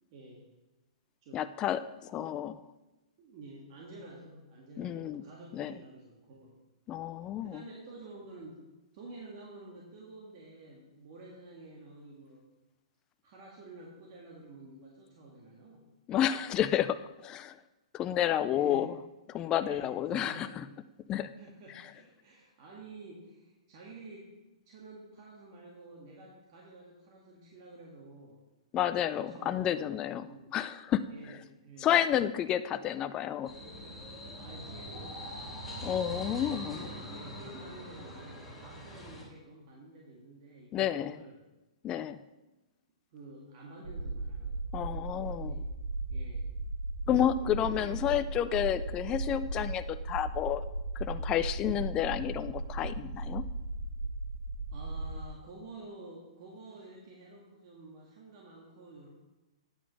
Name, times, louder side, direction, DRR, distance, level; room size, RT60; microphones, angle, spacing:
voice 1, 0.1-0.5 1.2-1.5 2.2-2.3 3.2-6.6 7.4-8.7 8.9-12.5 13.2-15.9 18.5-18.9 19.6-20.8 21.3-24.3 24.7-28.4 29.2-29.7 30.2-30.6 31.1-31.9 34.4-35.6 36.5-41.4 43.1-44.6 45.3-45.8 46.1-46.5 47.6-47.9 52.5-52.6 54.7-59.1, right 2 dB, 45° right, -3 dB, 1.8 m, -50 dB
voice 2, 1.3-2.5 4.8-5.2 5.5-5.7 6.9-7.6 16.1-17.0 17.2-17.6 17.9-18.9 19.3-20.6 21.1-21.3 28.7-30.3 30.5-31.4 31.8-33.5 35.8-36.9 40.7-41.2 41.8-42.2 44.7-45.6 47.1-50.6 51.0-53.4, left 10 dB, 20° left, 12 dB, 0.3 m, -30 dB
sound 1, 33.4-39.2, equal, ahead, 3.0 m, -43 dB
sound 2, 43.8-55.2, right 2 dB, 75° right, 1.7 m, -37 dB
8.9 x 5.1 x 6.4 m, 1.0 s
hypercardioid pair, 140°, 3 cm